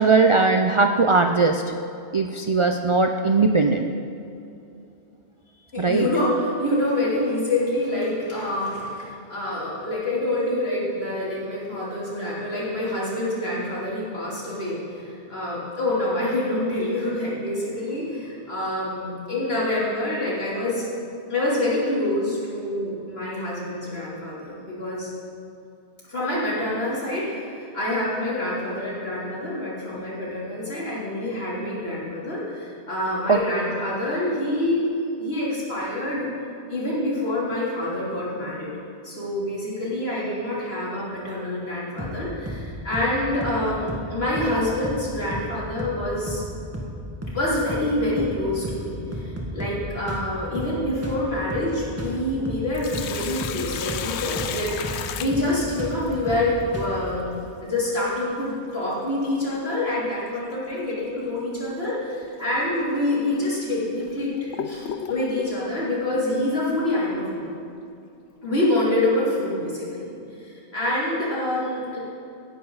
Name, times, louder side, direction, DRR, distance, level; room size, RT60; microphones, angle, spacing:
voice 1, 0.0-1.6 2.1-3.9 5.8-6.1 33.3-33.4, right 4 dB, 45° right, 5 dB, 0.4 m, -19 dB
voice 2, 5.7-20.9 21.3-25.1 26.1-34.9 35.2-36.3 36.7-38.7 39.0-46.4 47.3-64.3 64.6-67.4 68.4-70.1 70.4-72.0, left 1 dB, 65° left, -7 dB, 3.6 m, -26 dB
sound 1, 42.0-42.2 42.5-42.7 42.9-43.1 43.4-43.6 43.9-44.1 44.4-44.6 44.8-45.0 45.3-45.5 45.8-46.0 46.3-46.5 46.7-47.0 47.2-47.4 47.7-47.9 48.2-48.4 48.6-48.9 49.1-49.8 50.1-50.3 50.5-50.8 51.0-51.2 51.5-51.7 52.0-52.2 52.4-52.7 52.9-53.1 53.4-53.6 53.9-54.1 54.4-54.6 54.8-55.0 55.3-55.5 55.8-56.0 56.3-56.5 56.7-57.0, equal, 15° right, 1.8 m, -33 dB
Sink (filling or washing), 52.5-56.1 58.5-58.6 60.5-60.7 61.2-61.3 62.1-62.2 62.9-63.0 63.7-65.6, left 8 dB, 80° left, 0.9 m, -33 dB
17.0 x 10.5 x 4.0 m, 2.6 s
omnidirectional pair, 1.1 m